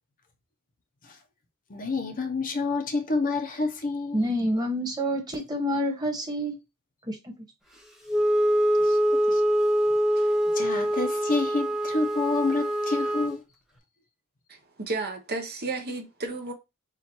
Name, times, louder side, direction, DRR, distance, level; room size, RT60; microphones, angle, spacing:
voice 1, 1.7-4.2 8.8-9.0 9.3-9.4 10.5-13.4, left 3 dB, 40° left, 0.7 m, -28 dB
voice 2, 4.1-6.6 7.1-7.3, equal, 20° right, 1.4 m, -28 dB
Wind instrument woodwind instrument, 8.1-13.4, equal, ahead, 0.9 m, -24 dB
voice 3, 14.5-16.5, right 3 dB, 45° right, 0.8 m, -33 dB
7.1 x 2.5 x 2.9 m
head